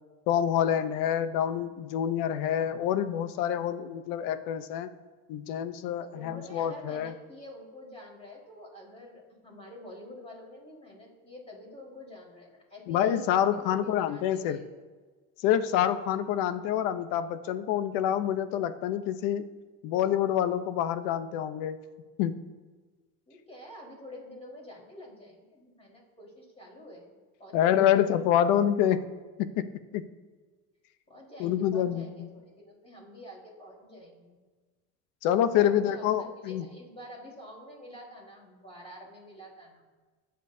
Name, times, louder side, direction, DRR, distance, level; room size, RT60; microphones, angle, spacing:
voice 1, 0.3-4.9 5.3-7.1 12.9-14.6 15.4-19.5 19.8-21.8 22.2-22.4 27.5-29.1 29.4-30.1 31.4-32.3 35.2-36.6, left 10 dB, 80° left, 11 dB, 0.9 m, -27 dB
voice 2, 6.0-14.7 23.3-28.0 31.1-34.4 35.5-39.8, left 1 dB, 20° left, -3 dB, 4.4 m, -48 dB
23.5 x 9.1 x 2.8 m, 1.4 s
supercardioid pair, 105°, 34 cm